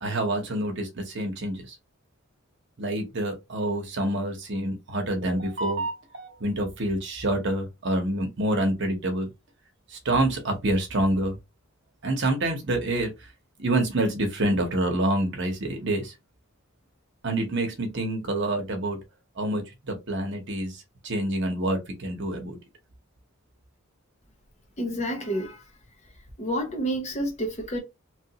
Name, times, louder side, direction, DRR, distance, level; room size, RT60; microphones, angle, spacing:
voice 1, 0.0-1.7 2.8-9.3 10.0-11.4 12.0-13.1 13.6-16.1 17.2-19.0 19.4-20.7 21.0-22.6, right 1 dB, 55° right, 1.0 m, -27 dB
voice 2, 24.8-25.6 26.4-27.8, right 1 dB, 35° left, 0.9 m, -29 dB
3.1 x 2.6 x 2.9 m
head